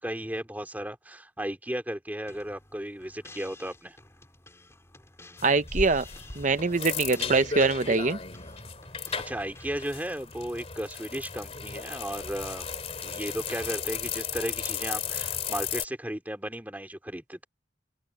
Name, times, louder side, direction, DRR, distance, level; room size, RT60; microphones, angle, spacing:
voice 1, 0.0-4.0 9.3-12.7 13.0-17.4, equal, 10° right, 2.8 m, -35 dB
sound 1, 2.3-10.0, left 2 dB, 15° left, 3.8 m, -53 dB
sound 2, 5.4-15.9, left 6 dB, 35° left, 3.0 m, -35 dB
voice 2, 5.4-6.0 6.4-8.2, right 3 dB, 40° right, 0.8 m, -23 dB
open air
head